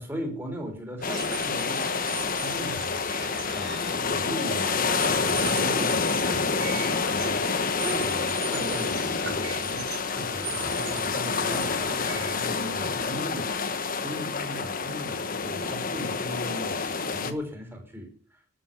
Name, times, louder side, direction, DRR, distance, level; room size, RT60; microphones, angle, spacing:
voice 1, 0.0-3.0 3.5-6.8 7.1-13.5 14.0-18.4, equal, 10° right, 2 dB, 4.6 m, -39 dB
sound 1, 1.0-17.3, left 4 dB, 45° left, 1.4 m, -28 dB
sound 2, 1.0-13.7, right 6 dB, 60° right, 4.9 m, -40 dB
13.5 x 8.1 x 7.3 m, 0.40 s
head